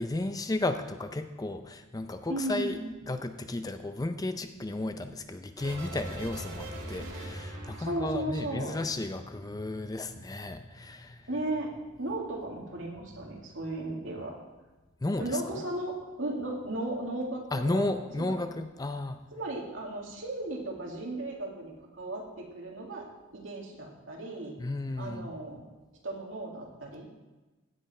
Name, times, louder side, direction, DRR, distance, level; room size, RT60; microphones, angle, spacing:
voice 1, 0.0-2.8 3.1-11.3 15.0-15.6 17.5-19.2 24.6-25.3, left 2 dB, 20° left, 8 dB, 0.5 m, -33 dB
voice 2, 2.3-2.9 7.8-8.8 11.3-11.7 12.0-14.4 15.2-18.4 19.3-23.0 23.3-24.5 25.0-25.6 26.0-27.1, right 1 dB, 70° right, -1 dB, 2.4 m, -35 dB
sound 1, 5.6-10.0 10.2-10.8, right 1 dB, 90° right, 2.1 m, -42 dB
16.0 x 7.7 x 4.3 m, 1.2 s
head